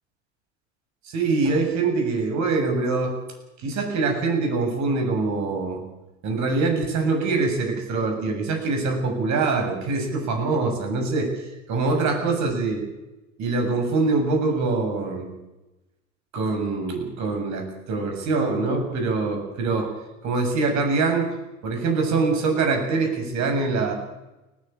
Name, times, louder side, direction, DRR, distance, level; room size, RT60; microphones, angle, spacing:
voice 1, 1.0-3.2 3.6-5.8 6.2-12.8 13.4-15.3 16.3-19.9 20.2-21.4 21.6-23.9, right 3 dB, 45° right, 4 dB, 7.5 m, -24 dB
30.0 x 11.0 x 8.9 m, 0.99 s
figure-of-eight pair, 75°, 38 cm